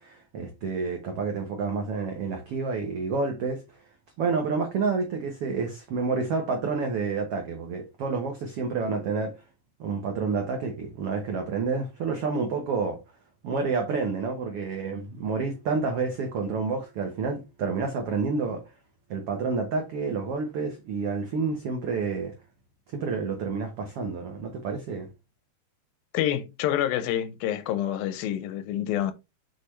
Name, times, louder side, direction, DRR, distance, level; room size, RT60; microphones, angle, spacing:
voice 1, 0.0-3.8 4.2-9.4 9.8-13.0 13.4-18.6 19.1-22.3 22.9-25.1, right 4 dB, 85° right, 1.2 m, -29 dB
voice 2, 26.1-29.1, left 11 dB, 85° left, 2.6 m, -27 dB
6.6 x 5.0 x 3.1 m
omnidirectional pair, 4.1 m